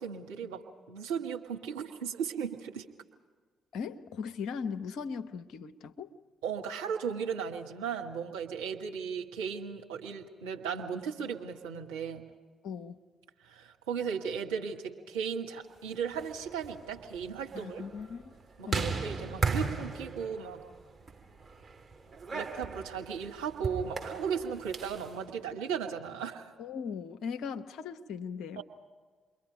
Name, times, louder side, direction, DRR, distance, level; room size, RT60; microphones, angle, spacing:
voice 1, 0.0-2.8 6.4-12.3 13.4-17.8 18.6-20.6 22.3-26.5 28.6-28.7, right 7 dB, 75° right, 1 dB, 1.6 m, -36 dB
voice 2, 3.7-6.2 12.6-13.0 17.5-18.3 18.6-18.9 26.6-28.6, left 6 dB, 65° left, 8 dB, 0.9 m, -38 dB
sound 1, 16.0-25.1, right 4 dB, 30° right, 4.0 m, -37 dB
29.0 x 22.5 x 5.2 m, 1.5 s
figure-of-eight pair, 40°, 0 cm